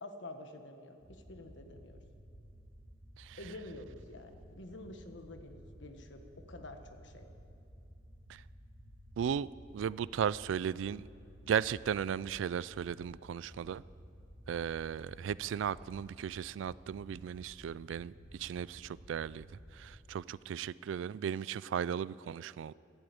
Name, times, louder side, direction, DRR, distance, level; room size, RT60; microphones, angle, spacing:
voice 1, 0.0-2.0 3.4-7.3, left 2 dB, 75° left, 6 dB, 1.3 m, -48 dB
sound 1, 1.0-19.9, equal, 45° right, 2.8 m, -55 dB
voice 2, 9.2-9.5 9.7-11.1 11.5-13.8 14.5-18.1 18.4-19.5 19.8-22.7, right 8 dB, 90° right, 20 dB, 0.3 m, -36 dB
12.5 x 11.5 x 8.6 m, 2.5 s
head